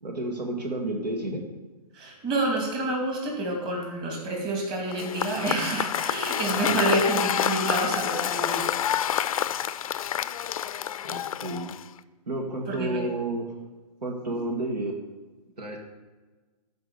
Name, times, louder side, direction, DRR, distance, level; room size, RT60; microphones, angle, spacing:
voice 1, 0.0-1.5 11.0-11.7 12.3-13.4 14.0-14.9 15.6-15.8, right 2 dB, 80° right, 2 dB, 1.9 m, -31 dB
voice 2, 1.9-8.7 12.7-13.1 14.3-14.4, right 2 dB, 25° right, 0 dB, 2.4 m, -28 dB
Cheering / Applause / Crowd, 4.9-12.0, left 10 dB, 60° left, 0.5 m, -28 dB
12.5 x 4.9 x 6.8 m, 1.3 s
hypercardioid pair, 135°, 20 cm